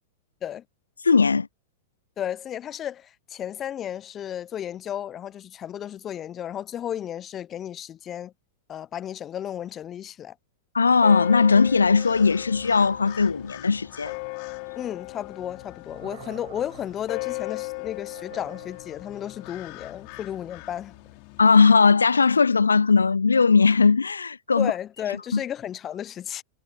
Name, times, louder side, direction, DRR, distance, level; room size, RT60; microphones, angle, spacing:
voice 1, 1.0-1.5 10.7-14.1 21.4-24.7 25.3-25.4, left 4 dB, 85° left, 0.4 m, -19 dB
voice 2, 2.2-8.3 8.7-10.3 14.7-20.9 24.6-26.4, left 10 dB, 30° left, 1.1 m, -33 dB
sound 1, 11.0-21.4, left 37 dB, 50° left, 4.9 m, -38 dB
Thunder, 15.1-21.2, right 11 dB, 70° right, 8.0 m, -50 dB
figure-of-eight pair, 90°, 0 cm